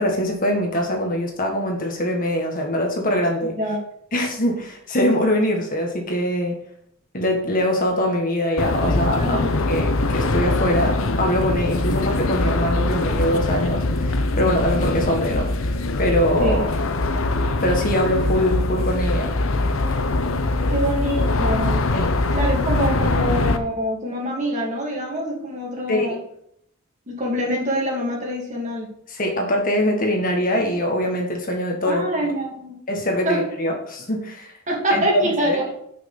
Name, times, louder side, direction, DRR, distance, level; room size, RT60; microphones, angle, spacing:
voice 1, 0.0-3.6 4.1-6.6 7.1-9.4 9.7-16.7 17.6-19.3 21.9-22.1 25.9-26.1 29.1-32.1 32.9-34.5 34.9-35.6, equal, 40° left, 1 dB, 1.8 m, -23 dB
voice 2, 3.4-3.8 9.1-9.5 16.4-16.6 20.7-21.8 22.3-26.2 27.1-28.9 31.9-32.8 33.2-33.4 34.7-35.7, equal, 35° right, -2 dB, 2.6 m, -25 dB
sound 1, 8.6-23.6, left 2 dB, 70° left, 0.8 m, -22 dB
6.4 x 6.0 x 6.8 m, 0.71 s
head